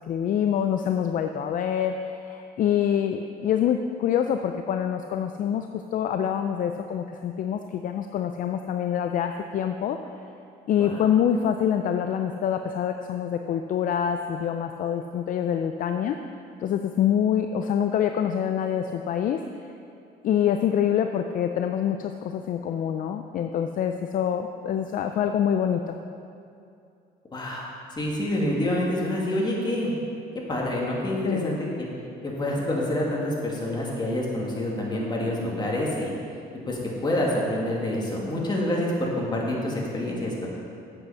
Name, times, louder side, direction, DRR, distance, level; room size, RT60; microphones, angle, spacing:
voice 1, 0.1-5.7 5.9-10.0 10.7-16.2 16.6-19.4 20.2-26.0 31.2-31.6, left 9 dB, 55° left, 7 dB, 0.5 m, -25 dB
voice 2, 27.3-27.7 28.0-29.9 30.5-31.9 32.2-36.1 36.7-40.5, left 1 dB, 25° left, -3 dB, 2.3 m, -27 dB
8.1 x 7.9 x 5.7 m, 2.6 s
cardioid pair, 110°, 17 cm